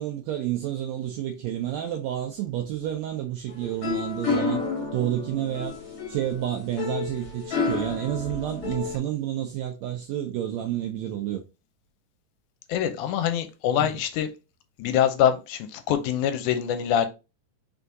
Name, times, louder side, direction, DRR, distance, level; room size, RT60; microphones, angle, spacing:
voice 1, 0.0-4.6 4.9-11.4 13.8-13.9, right 11 dB, 85° right, 1.5 m, -30 dB
sound 1, 3.5-9.0, left 4 dB, 60° left, 1.7 m, -30 dB
voice 2, 12.7-14.3 14.8-17.1, left 10 dB, 80° left, 2.0 m, -24 dB
4.7 x 3.4 x 2.6 m
omnidirectional pair, 3.6 m